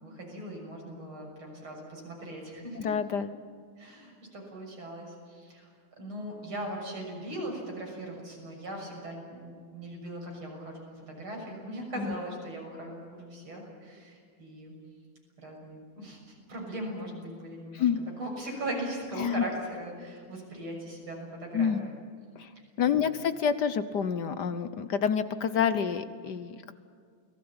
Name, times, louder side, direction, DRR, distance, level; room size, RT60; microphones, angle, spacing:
voice 1, 0.0-2.9 3.8-5.7 6.0-14.7 15.4-17.9 18.2-21.9 22.9-23.1, right 1 dB, 80° right, 0 dB, 7.4 m, -39 dB
voice 2, 2.8-3.3 12.0-12.1 17.7-18.0 19.2-19.4 21.5-21.9 22.4-22.5 22.8-26.7, left 7 dB, 60° left, 12 dB, 1.4 m, -28 dB
29.0 x 19.0 x 8.8 m, 2.1 s
omnidirectional pair, 2.3 m